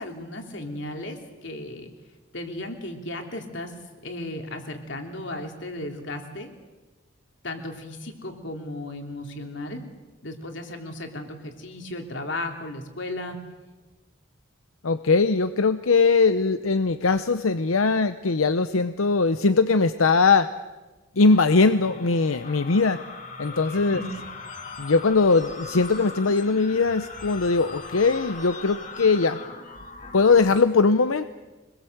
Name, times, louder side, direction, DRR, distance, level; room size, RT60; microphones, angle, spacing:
voice 1, 0.0-1.9 2.3-3.7 4.0-6.5 7.4-9.8 10.2-13.4 23.9-24.1, left 1 dB, 60° left, 4 dB, 3.2 m, -35 dB
voice 2, 14.8-20.5 21.2-23.0 23.4-24.0 24.8-29.4 30.1-31.2, left 4 dB, 90° left, 11 dB, 0.8 m, -20 dB
sound 1, 21.3-30.6, left 3 dB, 35° left, 2.4 m, -40 dB
25.5 x 21.0 x 8.0 m, 1.2 s
head